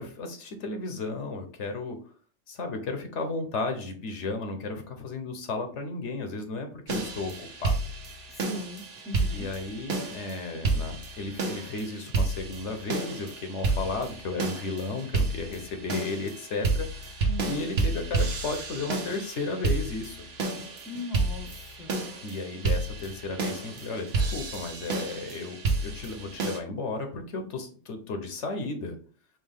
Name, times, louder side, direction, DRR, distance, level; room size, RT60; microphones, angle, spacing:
voice 1, 0.0-2.0 2.5-7.8 9.3-20.3 22.2-29.0, left 3 dB, 85° left, 1.2 m, -34 dB
sound 1, 6.9-26.6, right 3 dB, 65° right, 1.1 m, -31 dB
voice 2, 8.3-9.5 17.2-17.8 20.8-21.9, left 1 dB, ahead, 0.7 m, -39 dB
4.4 x 3.2 x 3.4 m
omnidirectional pair, 1.2 m